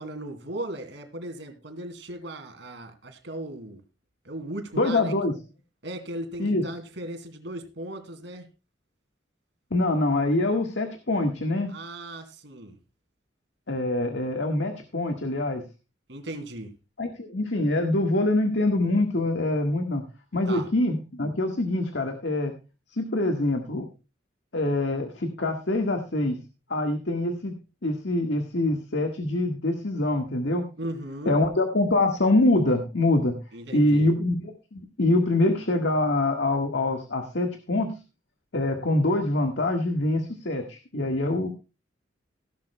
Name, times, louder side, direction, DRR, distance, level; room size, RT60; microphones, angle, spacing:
voice 1, 0.0-3.8 4.2-5.1 5.8-8.5 11.7-12.8 16.1-16.7 20.5-20.7 30.8-31.4 33.5-34.1, right 1 dB, 80° right, 6 dB, 2.6 m, -37 dB
voice 2, 4.7-5.4 6.4-6.7 9.7-11.7 13.7-15.6 17.0-20.0 20.3-22.5 22.9-23.9 24.5-26.4 26.7-27.5 27.8-30.6 31.2-33.3 33.7-38.0 38.5-41.5, left 2 dB, 80° left, 4 dB, 1.6 m, -24 dB
16.5 x 11.5 x 2.2 m, 0.30 s
head